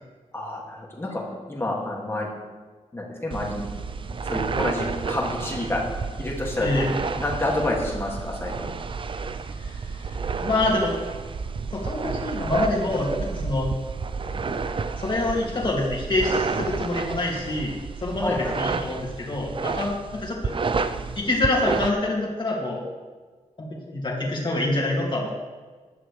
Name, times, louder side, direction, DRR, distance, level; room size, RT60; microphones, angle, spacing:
voice 1, 0.3-1.2 1.5-2.3 2.9-3.7 4.2-5.8 6.2-6.7 7.2-8.7 18.2-18.3, left 2 dB, 20° left, -3 dB, 2.3 m, -28 dB
Coming Hair, 3.3-21.9, right 4 dB, 40° right, 0.5 m, -31 dB
voice 2, 10.4-11.0 11.7-13.7 15.0-20.5 21.2-22.8 23.6-25.3, left 2 dB, 35° left, -4 dB, 2.4 m, -26 dB
15.5 x 11.0 x 3.3 m, 1.4 s
wide cardioid pair, 175°, 13 cm